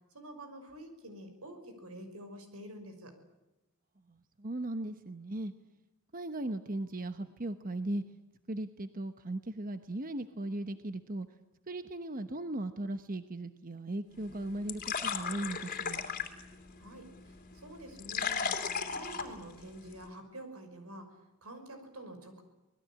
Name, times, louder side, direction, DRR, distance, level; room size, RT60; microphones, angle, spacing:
voice 1, 0.1-3.1 16.8-18.5 18.9-22.4, right 1 dB, 85° right, 7 dB, 5.8 m, -48 dB
voice 2, 4.1-5.5 6.1-8.0 8.5-11.3 11.7-16.0, right 1 dB, 40° right, 9 dB, 1.1 m, -37 dB
sound 1, 14.1-20.1, left 6 dB, 40° left, 3.0 m, -38 dB
25.5 x 20.5 x 8.8 m, 1.0 s
head